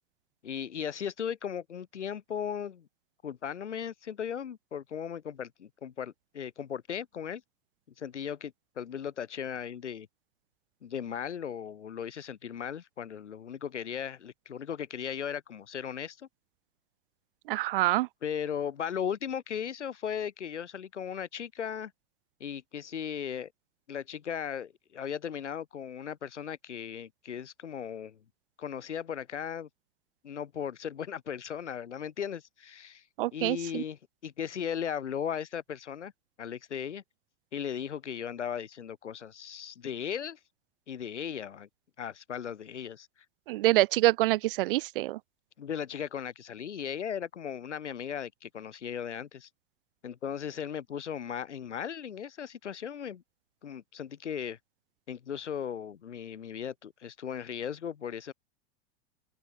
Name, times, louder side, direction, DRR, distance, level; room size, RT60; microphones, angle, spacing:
voice 1, 0.4-2.9 3.2-7.4 8.0-10.1 10.8-16.3 18.2-21.9 22.4-23.5 23.9-28.2 28.6-29.7 30.2-33.0 33.3-36.1 36.4-37.0 37.5-40.4 40.9-41.7 42.0-43.1 45.6-49.5 50.0-53.2 53.6-54.6 55.1-58.3, left 8 dB, 75° left, 1.4 m, -37 dB
voice 2, 17.5-18.1 33.2-33.8 43.5-45.2, right 17 dB, 50° right, 0.7 m, -26 dB
open air
figure-of-eight pair, 90°, 36 cm